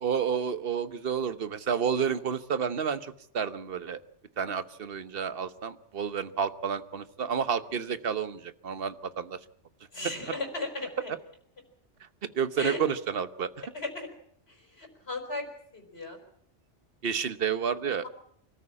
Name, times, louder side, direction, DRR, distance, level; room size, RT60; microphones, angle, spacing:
voice 1, 0.0-4.0 4.4-9.4 12.3-13.5 17.0-18.0, right 7 dB, 55° right, 12 dB, 1.2 m, -30 dB
voice 2, 9.9-11.1 12.6-12.8 13.7-14.1 14.8-15.5 15.7-16.2, left 2 dB, 60° left, 3 dB, 4.9 m, -35 dB
25.5 x 14.0 x 8.6 m, 0.68 s
omnidirectional pair, 1.2 m